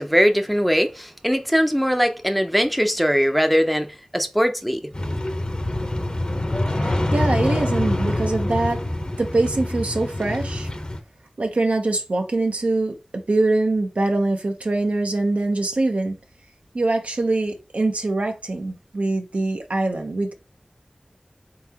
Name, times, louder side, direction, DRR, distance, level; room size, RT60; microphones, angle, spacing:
voice 1, 0.0-4.9, equal, ahead, 0.6 m, -21 dB
sound 1, 4.9-11.0, left 1 dB, 40° left, 0.9 m, -25 dB
voice 2, 6.7-8.8 9.2-10.7 11.4-13.0 13.3-16.1 16.7-20.3, right 2 dB, 80° right, 0.9 m, -23 dB
4.0 x 3.7 x 2.9 m
wide cardioid pair, 50°, 2 cm